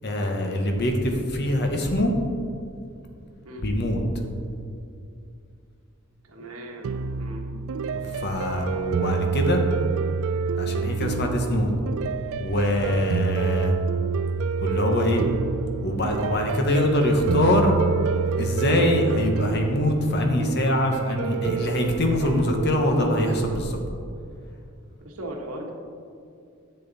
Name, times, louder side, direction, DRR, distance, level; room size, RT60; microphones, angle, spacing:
voice 1, 0.0-2.1 3.6-4.0 7.9-9.6 10.6-11.7 12.4-13.8 14.6-15.2 15.8-17.8 18.4-23.8, left 1 dB, 50° left, 3 dB, 1.1 m, -23 dB
voice 2, 6.2-7.5 12.8-13.1 25.0-25.7, right 1 dB, 85° right, 1 dB, 1.4 m, -38 dB
sound 1, 6.8-23.5, right 5 dB, 70° right, 0.3 m, -28 dB
10.5 x 7.9 x 4.1 m, 2.4 s
head